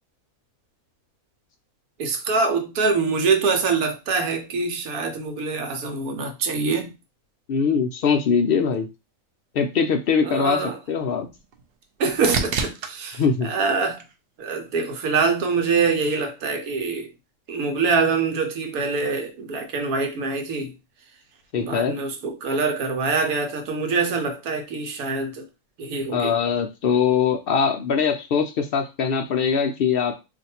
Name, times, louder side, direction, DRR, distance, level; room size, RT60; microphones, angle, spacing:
voice 1, 2.0-6.9 10.2-10.8 12.0-14.0 14.4-17.1 17.5-20.7 21.6-25.4 25.8-26.3, right 4 dB, 90° right, 1.2 m, -24 dB
voice 2, 7.5-8.9 9.5-11.3 13.1-13.5 21.5-21.9 26.1-30.2, left 6 dB, 75° left, 0.5 m, -22 dB
sound 1, 10.5-14.7 15.2-15.8 23.7-23.8, right 5 dB, 65° right, 0.6 m, -32 dB
2.5 x 2.5 x 4.2 m
omnidirectional pair, 1.5 m